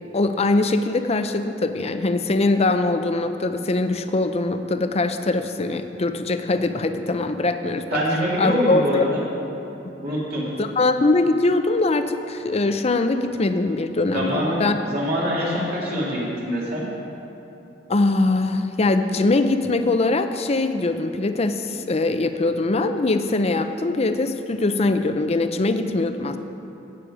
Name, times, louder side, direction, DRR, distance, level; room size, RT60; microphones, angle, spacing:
voice 1, 0.1-7.8 8.4-9.1 10.6-14.8 17.9-26.4, left 2 dB, 35° left, 8 dB, 0.6 m, -22 dB
voice 2, 7.9-9.2 10.0-10.4 14.1-16.8, equal, 60° right, -5 dB, 2.7 m, -24 dB
15.5 x 8.5 x 5.0 m, 2.9 s
head